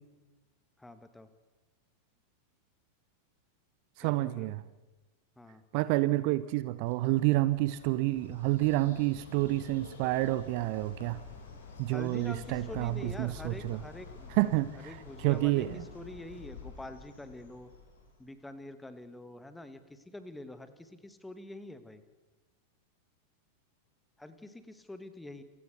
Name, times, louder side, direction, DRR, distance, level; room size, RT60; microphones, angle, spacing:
voice 1, 0.8-1.3 4.0-4.5 5.4-5.6 11.9-14.5 14.8-17.7 18.2-22.0 24.2-25.4, left 2 dB, 5° left, 11 dB, 1.8 m, -46 dB
voice 2, 4.0-4.6 5.7-11.2 11.8-13.8 14.4-15.8, right 17 dB, 45° right, 16 dB, 0.8 m, -29 dB
Bird, 6.9-18.3, left 5 dB, 60° left, 6.1 m, -49 dB
28.0 x 16.0 x 6.8 m, 1.2 s
figure-of-eight pair, 90°, 0 cm